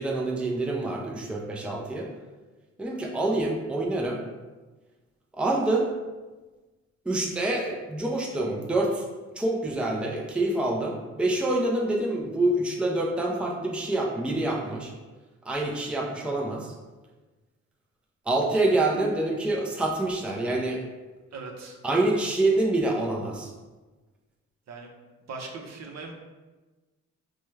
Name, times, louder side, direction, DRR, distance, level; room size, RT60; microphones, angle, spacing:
voice 1, 0.0-2.1 2.8-4.2 5.3-5.9 7.1-9.0 9.4-14.9 15.4-16.7 18.3-20.8 21.8-23.5, right 2 dB, 5° right, -1 dB, 0.5 m, -26 dB
voice 2, 21.3-21.8 24.7-24.9 25.3-26.1, right 3 dB, 60° right, 2 dB, 0.7 m, -39 dB
4.3 x 2.3 x 3.2 m, 1.2 s
cardioid pair, 90°, 30 cm